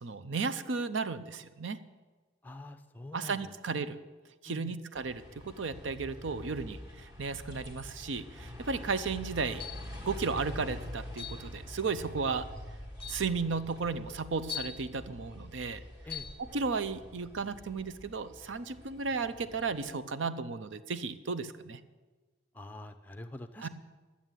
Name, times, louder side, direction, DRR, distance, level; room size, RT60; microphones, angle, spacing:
voice 1, 0.0-1.8 3.1-4.0 4.4-9.7 10.0-12.5 13.1-15.8 16.5-21.8 23.6-23.7, right 4 dB, 80° right, 12 dB, 0.6 m, -34 dB
voice 2, 2.4-3.9 4.5-4.7 16.0-16.3 22.5-23.7, left 2 dB, 10° left, 8 dB, 0.5 m, -46 dB
sound 1, 4.9-19.9, left 1 dB, 20° right, 1.4 m, -46 dB
sound 2, 9.6-10.0 11.2-11.5 12.4-12.5 13.0-13.3 14.5-14.8 16.1-16.4, left 9 dB, 25° left, 0.9 m, -40 dB
11.0 x 7.1 x 9.0 m, 1.3 s
head